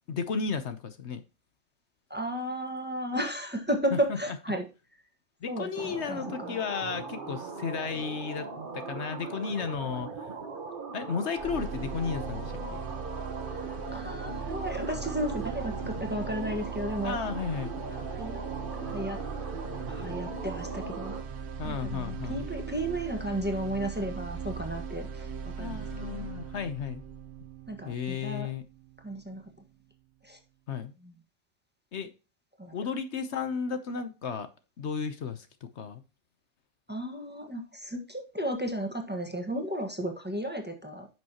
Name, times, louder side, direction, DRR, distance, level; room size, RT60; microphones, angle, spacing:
voice 1, 0.1-1.2 3.9-4.2 5.4-8.5 8.7-10.3 10.9-12.8 17.0-17.7 21.6-22.5 25.6-27.0 27.9-28.6 30.7-30.9 31.9-32.1 32.7-34.5 34.8-36.0, left 6 dB, 70° left, 10 dB, 1.1 m, -34 dB
voice 2, 2.1-4.6 5.5-6.6 13.5-17.2 17.9-18.4 18.7-19.2 19.9-21.1 21.6-25.9 26.1-26.3 27.7-28.5 29.0-29.4 30.2-30.4 31.0-31.1 32.6-32.7 36.9-41.1, right 1 dB, 10° right, 3 dB, 1.5 m, -34 dB
sound 1, 5.8-21.2, right 3 dB, 45° right, 1.3 m, -39 dB
sound 2, 11.4-29.4, right 6 dB, 65° right, 1.1 m, -39 dB
10.0 x 6.3 x 2.9 m, 0.31 s
omnidirectional pair, 1.2 m